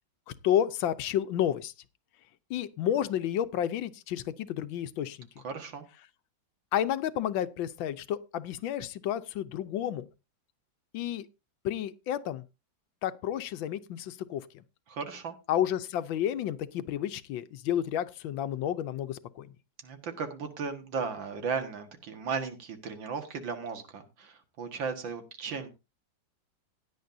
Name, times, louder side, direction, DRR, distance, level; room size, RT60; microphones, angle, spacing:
voice 1, 0.4-1.7 2.5-5.3 6.7-10.1 10.9-11.3 11.6-12.4 13.0-14.6 15.5-19.5, left 10 dB, 90° left, 1.5 m, -31 dB
voice 2, 5.4-5.9 14.9-15.3 19.8-25.7, right 5 dB, 85° right, 2.4 m, -36 dB
16.0 x 10.0 x 2.7 m
omnidirectional pair, 2.0 m